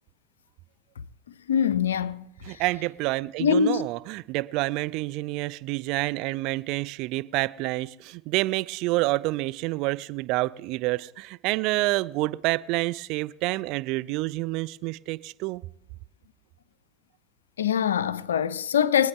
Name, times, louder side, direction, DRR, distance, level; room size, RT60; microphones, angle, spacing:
voice 1, 1.5-2.2 3.4-3.9 17.6-19.1, left 7 dB, 90° left, 0.5 m, -23 dB
voice 2, 2.4-15.6, right 20 dB, 60° right, 0.4 m, -28 dB
23.5 x 9.0 x 3.7 m
hypercardioid pair, 80°, 0 cm